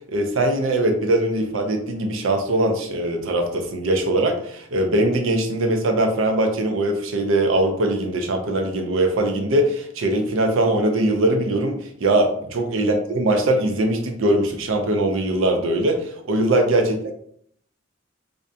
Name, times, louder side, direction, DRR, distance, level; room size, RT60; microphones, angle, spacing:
voice 1, 0.1-17.1, right 1 dB, 90° right, 4 dB, 0.4 m, -21 dB
2.4 x 2.1 x 2.6 m, 0.64 s
head